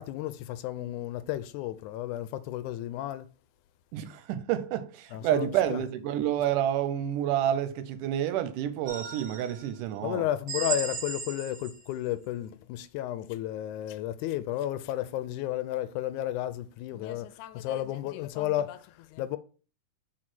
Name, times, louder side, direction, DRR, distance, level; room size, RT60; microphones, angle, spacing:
voice 1, 0.0-3.3 5.1-5.8 10.0-19.4, left 13 dB, 80° left, 1.9 m, -33 dB
voice 2, 3.9-10.3, right 11 dB, 85° right, 2.3 m, -29 dB
sound 1, 8.9-9.7 10.5-11.9, right 5 dB, 50° right, 2.6 m, -35 dB
4.9 x 4.3 x 6.0 m
omnidirectional pair, 3.6 m